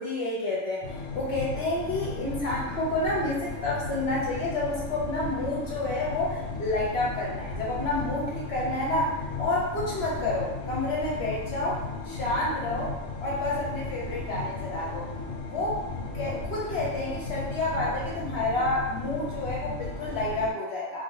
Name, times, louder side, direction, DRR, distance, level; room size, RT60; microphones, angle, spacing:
voice 1, 0.0-11.8 12.1-15.1 15.4-15.8 16.1-21.0, left 2 dB, 55° left, -5 dB, 1.0 m, -29 dB
sound 1, 0.8-20.5, left 3 dB, 90° left, 1.0 m, -35 dB
2.6 x 2.5 x 3.0 m, 0.99 s
omnidirectional pair, 1.4 m